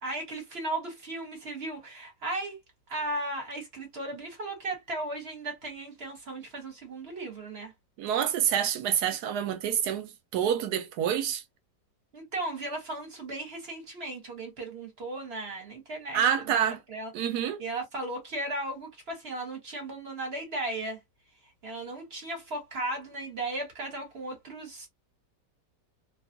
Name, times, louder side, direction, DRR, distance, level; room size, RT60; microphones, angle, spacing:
voice 1, 0.0-2.6 2.9-7.7 12.1-16.6 16.9-17.1 17.6-21.0 21.6-24.9, right 2 dB, 45° right, 1.0 m, -36 dB
voice 2, 8.0-11.4 16.1-16.8 17.1-17.6, right 9 dB, 70° right, 1.0 m, -27 dB
2.7 x 2.3 x 2.5 m
omnidirectional pair, 1.9 m